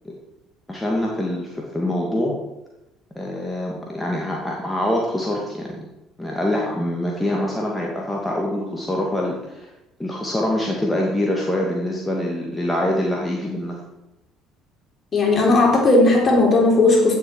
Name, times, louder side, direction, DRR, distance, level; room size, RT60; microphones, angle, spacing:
voice 1, 0.7-2.4 3.2-5.8 6.2-9.7 10.0-13.8, left 1 dB, 10° left, -2 dB, 2.4 m, -25 dB
voice 2, 15.1-17.2, left 2 dB, 35° left, -1 dB, 4.0 m, -16 dB
16.5 x 7.2 x 4.8 m, 0.93 s
figure-of-eight pair, 55°, 0 cm